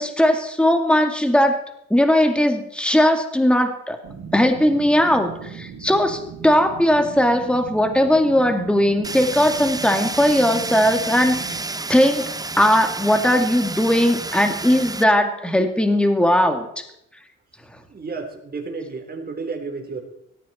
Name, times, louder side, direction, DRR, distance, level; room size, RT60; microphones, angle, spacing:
voice 1, 0.0-1.6 1.9-4.0 4.3-11.6 11.9-16.8, left 1 dB, 5° left, 6 dB, 2.3 m, -18 dB
sound 1, 4.0-11.6, right 7 dB, 80° right, 3.4 m, -39 dB
Fire, 9.0-15.0, right 3 dB, 10° right, 0.7 m, -30 dB
voice 2, 17.8-20.0, right 4 dB, 30° right, 3 dB, 3.9 m, -32 dB
17.5 x 14.5 x 4.4 m, 0.78 s
cardioid pair, 90°, 30 cm